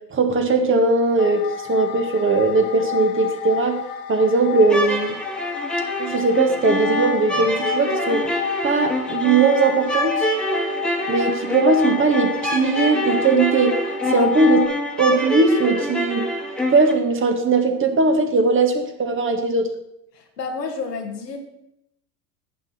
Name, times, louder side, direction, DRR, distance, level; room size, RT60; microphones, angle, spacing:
voice 1, 0.1-3.8 4.1-5.1 6.0-8.4 8.6-10.3 11.1-13.7 14.1-14.6 15.0-16.3 16.7-19.7, right 3 dB, 25° right, 5 dB, 1.7 m, -19 dB
sound 1, 1.2-14.7, left 8 dB, 65° left, 2.2 m, -30 dB
sound 2, 4.6-16.9, equal, ahead, 1.8 m, -26 dB
voice 2, 20.1-21.4, left 5 dB, 90° left, 3 dB, 1.9 m, -30 dB
11.0 x 8.2 x 4.4 m, 0.81 s
hypercardioid pair, 90°, 47 cm